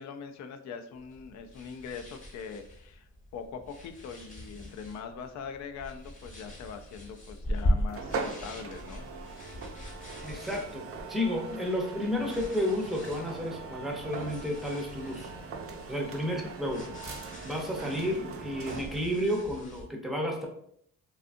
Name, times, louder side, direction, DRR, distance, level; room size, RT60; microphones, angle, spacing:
voice 1, 0.0-9.1 16.3-16.4, left 6 dB, 65° left, 7 dB, 0.4 m, -42 dB
sound 1, 0.9-19.8, left 1 dB, 25° left, 0.9 m, -39 dB
sound 2, 7.9-19.2, right 4 dB, 50° right, 0.5 m, -41 dB
voice 2, 10.2-15.3 15.9-16.9 17.4-20.5, left 1 dB, ahead, 0 dB, 0.6 m, -32 dB
2.6 x 2.3 x 2.5 m, 0.68 s
cardioid pair, 90°, 30 cm